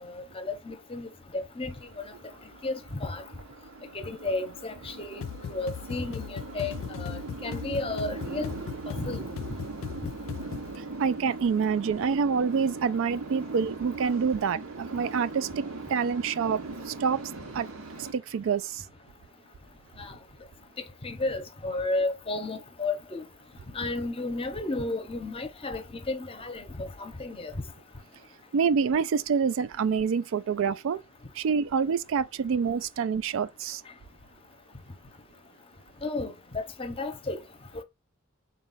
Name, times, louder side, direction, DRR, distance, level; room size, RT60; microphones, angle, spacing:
voice 1, 0.0-2.0 2.6-3.2 3.9-6.7 7.0-8.5 9.0-9.3 20.0-20.1 21.0-23.2 23.7-27.5 36.0-37.4, left 2 dB, 25° left, 0.7 m, -33 dB
sound 1, 1.7-18.1, right 3 dB, 85° right, 0.9 m, -40 dB
sound 2, 5.2-10.8, left 7 dB, 65° left, 0.3 m, -38 dB
voice 2, 11.0-17.2 17.5-17.7 18.0-18.8 28.5-31.0 31.4-33.8, right 6 dB, 65° right, 0.3 m, -27 dB
4.0 x 2.3 x 3.9 m
head